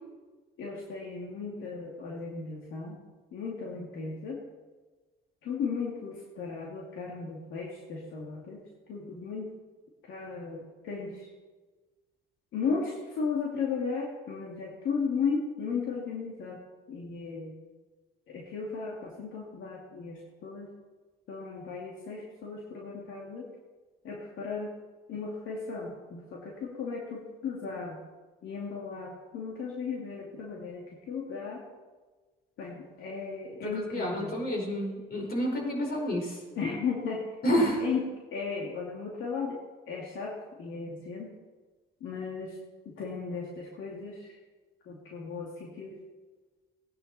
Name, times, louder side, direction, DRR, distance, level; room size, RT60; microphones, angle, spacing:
voice 1, 0.6-3.0 3.3-4.4 5.4-8.6 8.9-9.5 10.1-11.3 12.5-16.6 16.9-17.5 18.3-20.7 21.3-23.5 24.0-24.7 25.1-28.0 28.4-31.6 32.6-34.4 36.5-37.2 37.8-38.0 38.3-39.6 39.9-40.3 40.6-41.3 42.0-42.6 42.8-44.4 44.9-46.0, left 5 dB, 80° left, -4 dB, 2.5 m, -35 dB
voice 2, 33.6-36.4 37.4-37.8, equal, 50° left, -1 dB, 5.3 m, -29 dB
18.5 x 10.5 x 4.3 m, 1.3 s
cardioid pair, 90°, 20 cm